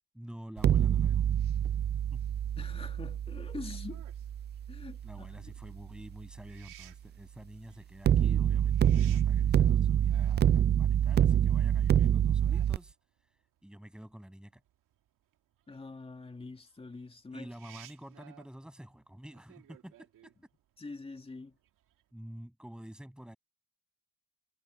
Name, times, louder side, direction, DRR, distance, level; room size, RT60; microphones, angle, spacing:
voice 1, 0.1-1.3 1.6-1.7 2.1-2.4 5.0-13.0 13.6-14.6 17.3-20.3 22.1-23.4, equal, 5° right, 7.7 m, -49 dB
sound 1, 0.6-5.7 8.1-12.8, right 10 dB, 35° right, 0.4 m, -26 dB
voice 2, 2.6-4.0 4.7-5.5 15.7-17.5 20.8-21.6, left 3 dB, 20° left, 2.4 m, -45 dB
sound 2, 3.7-22.1, right 12 dB, 80° right, 2.3 m, -59 dB
cardioid pair, 125°, 32 cm